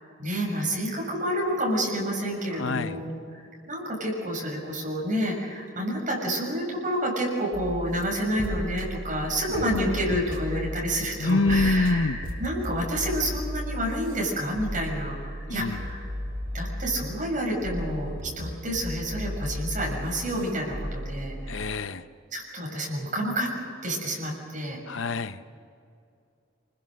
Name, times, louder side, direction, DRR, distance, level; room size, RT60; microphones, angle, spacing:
voice 1, 0.2-3.4 3.7-16.1 16.5-21.6 22.3-23.5 23.8-24.8, equal, 40° right, -2 dB, 6.8 m, -29 dB
voice 2, 2.5-3.0 9.5-9.7 11.2-12.2 15.5-15.8 21.5-22.0 24.9-25.6, left 3 dB, 70° left, 12 dB, 0.7 m, -26 dB
sound 1, 7.5-21.8, equal, 65° right, 3.6 m, -35 dB
27.0 x 21.0 x 6.5 m, 2.5 s
head